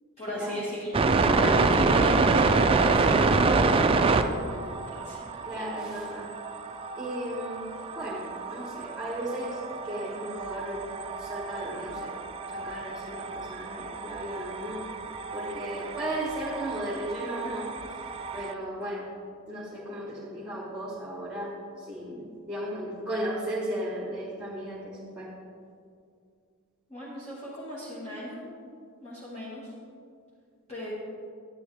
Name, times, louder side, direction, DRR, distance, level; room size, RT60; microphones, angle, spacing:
voice 1, 0.2-5.6 26.9-28.5 29.0-29.7 30.7-30.9, left 1 dB, 30° left, -9 dB, 1.7 m, -38 dB
sound 1, 0.9-18.5, right 3 dB, 25° right, 0.4 m, -27 dB
voice 2, 1.2-1.7 5.4-6.3 7.0-7.6 7.9-10.9 11.2-12.1 12.5-14.8 15.3-17.7 18.3-19.1 19.5-25.3, right 1 dB, 5° right, -6 dB, 1.5 m, -35 dB
9.9 x 9.7 x 3.4 m, 2.3 s
head